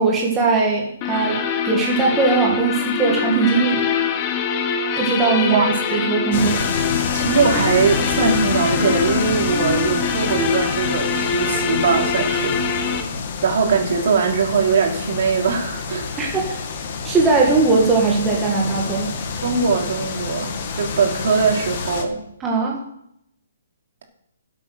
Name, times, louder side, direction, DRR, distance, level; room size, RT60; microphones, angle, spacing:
voice 1, 0.0-3.8 5.0-6.6 16.2-16.5 17.0-19.1 22.4-22.8, right 4 dB, 10° right, -3 dB, 1.9 m, -19 dB
sound 1, 1.0-13.0, left 6 dB, 25° left, 1.3 m, -24 dB
voice 2, 5.5-6.0 7.1-12.9 13.4-16.4 19.4-22.2, right 5 dB, 55° right, 1 dB, 3.4 m, -21 dB
sound 2, 6.3-22.0, left 5 dB, 40° left, 2.0 m, -28 dB
12.5 x 8.1 x 6.6 m, 0.76 s
hypercardioid pair, 160°, 0 cm